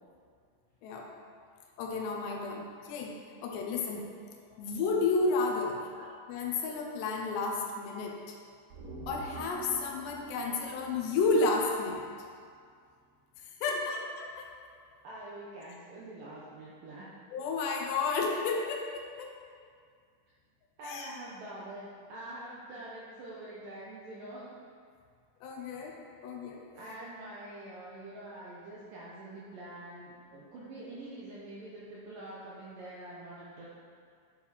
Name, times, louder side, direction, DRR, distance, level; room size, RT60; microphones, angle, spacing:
voice 1, 1.8-3.2 3.4-4.0 4.6-5.9 6.3-8.4 9.1-12.1 13.6-14.5 17.3-19.3 20.8-21.1 25.4-26.0 26.2-26.6, left 3 dB, 75° left, 1 dB, 2.8 m, -31 dB
sound 1, 8.7-12.1 12.4-12.5, right 2 dB, 55° right, 4.3 m, -47 dB
voice 2, 13.7-14.0 15.0-17.1 20.8-24.6 26.8-33.7, right 1 dB, 70° right, -7 dB, 2.1 m, -45 dB
10.0 x 7.4 x 4.3 m, 2.2 s
omnidirectional pair, 5.3 m